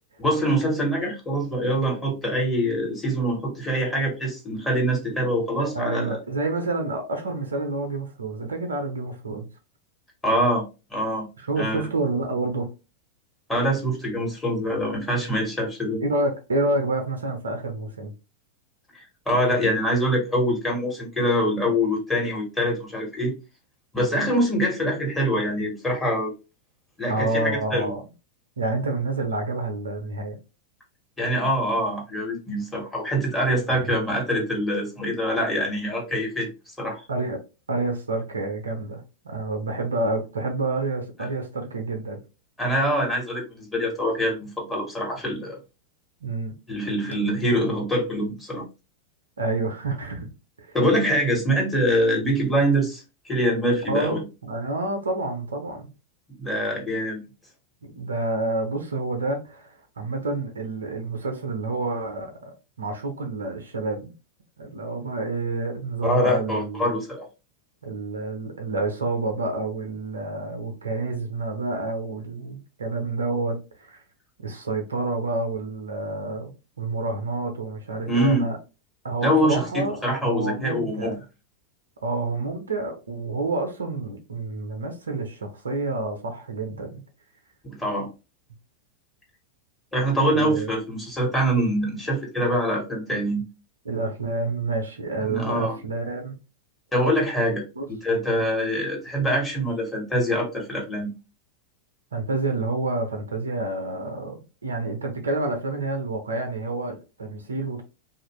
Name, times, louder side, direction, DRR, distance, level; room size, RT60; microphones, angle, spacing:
voice 1, 0.2-6.2 10.2-10.6 10.9-11.3 11.6-11.8 13.5-16.0 18.9-23.3 23.9-26.3 27.0-27.9 31.2-36.5 36.8-37.0 42.6-45.6 46.7-48.6 50.7-54.2 56.4-57.2 66.0-67.2 78.0-78.4 79.2-81.1 87.6-88.1 89.9-93.4 95.2-95.8 96.9-101.1, equal, 10° left, 1.3 m, -24 dB
voice 2, 5.6-9.5 11.4-12.7 16.0-18.1 27.1-28.0 28.6-30.4 33.7-33.9 37.1-37.4 37.7-42.2 46.2-46.6 49.4-50.3 50.6-50.8 53.9-55.9 57.8-64.1 64.6-66.9 67.8-74.0 74.4-76.5 76.8-78.6 79.0-81.2 82.0-87.0 90.3-90.7 93.8-96.3 97.8-97.9 102.1-107.8, right 2 dB, 75° right, 0.6 m, -28 dB
2.7 x 2.5 x 3.0 m
figure-of-eight pair, 90°, 0 cm